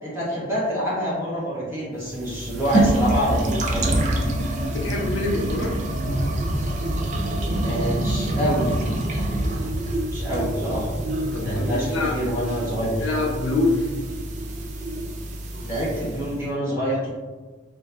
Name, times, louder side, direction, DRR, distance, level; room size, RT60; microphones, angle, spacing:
voice 1, 0.0-4.0 7.6-8.7 10.1-10.9 11.4-13.1 15.6-17.1, equal, 15° right, -8 dB, 0.8 m, -26 dB
sound 1, 2.1-16.4, right 1 dB, 40° right, 0.3 m, -26 dB
voice 2, 4.7-5.8 11.3-12.2 12.6-13.9, left 2 dB, 75° left, 0 dB, 0.5 m, -26 dB
2.5 x 2.2 x 2.2 m, 1.3 s
head